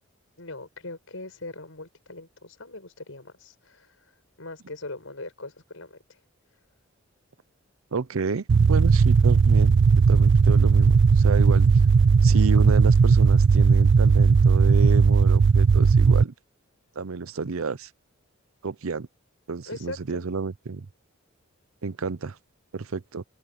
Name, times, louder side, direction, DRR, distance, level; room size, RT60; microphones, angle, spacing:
voice 1, 0.4-6.2 19.7-20.3, left 2 dB, 70° left, 6.1 m, -41 dB
voice 2, 7.9-9.8 10.1-11.7 12.2-16.3 17.0-17.9 18.6-19.1 19.5-20.9 21.8-22.4 22.7-23.2, right 4 dB, 90° right, 0.7 m, -30 dB
sound 1, 8.5-16.2, right 5 dB, 60° right, 0.4 m, -17 dB
open air
head